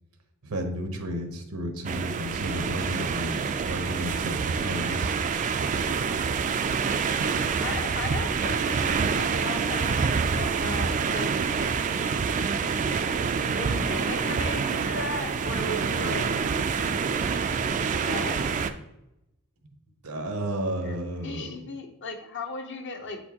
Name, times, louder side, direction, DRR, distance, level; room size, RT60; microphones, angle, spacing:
voice 1, 0.4-4.3 4.6-5.1 5.4-5.6 20.0-21.6, equal, 90° right, 5 dB, 0.9 m, -32 dB
sound 1, 1.8-18.7, right 5 dB, 35° right, 0.3 m, -27 dB
voice 2, 7.6-11.7 13.6-16.3 17.8-18.4 20.8-23.2, left 3 dB, 55° left, 4 dB, 0.8 m, -36 dB
7.7 x 4.4 x 2.9 m, 0.89 s
head